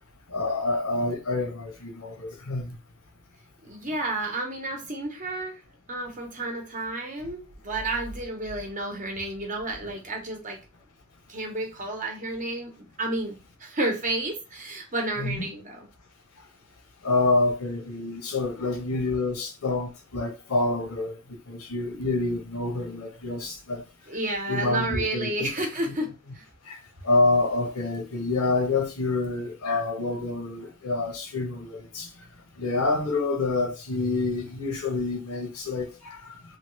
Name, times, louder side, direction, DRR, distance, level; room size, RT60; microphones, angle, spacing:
voice 1, 0.3-2.8 9.8-9.9 15.2-15.5 17.0-21.2 21.5-23.8 24.5-25.5 26.7-26.8 27.0-32.1 32.6-36.4, left 3 dB, 75° left, 0.9 m, -27 dB
voice 2, 3.6-5.6 5.9-7.4 7.6-10.6 11.3-15.8 24.1-26.1 26.3-26.4, right 2 dB, 35° right, 0.9 m, -31 dB
3.1 x 2.3 x 3.1 m
head